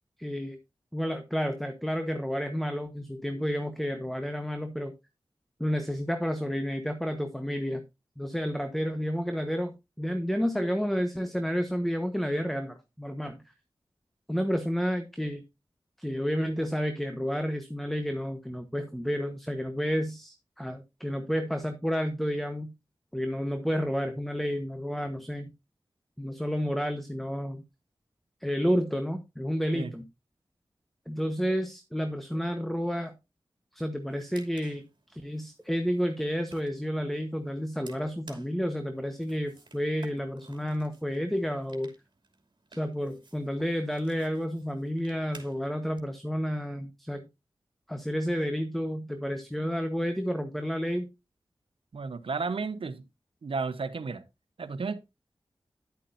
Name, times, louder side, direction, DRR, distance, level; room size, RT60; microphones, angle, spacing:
voice 1, 0.2-0.6 0.9-4.9 5.6-7.8 8.2-13.4 14.3-15.4 16.0-22.7 23.1-25.5 26.2-27.6 28.4-30.1 31.1-33.1 33.7-41.9 42.7-47.2 47.9-51.1, equal, ahead, 1.2 m, -30 dB
sound 1, 34.0-46.0, right 3 dB, 55° right, 2.7 m, -56 dB
voice 2, 51.9-53.0 53.4-54.2 54.6-55.0, right 4 dB, 80° right, 1.0 m, -33 dB
11.0 x 8.5 x 2.6 m
cardioid pair, 50°, 9 cm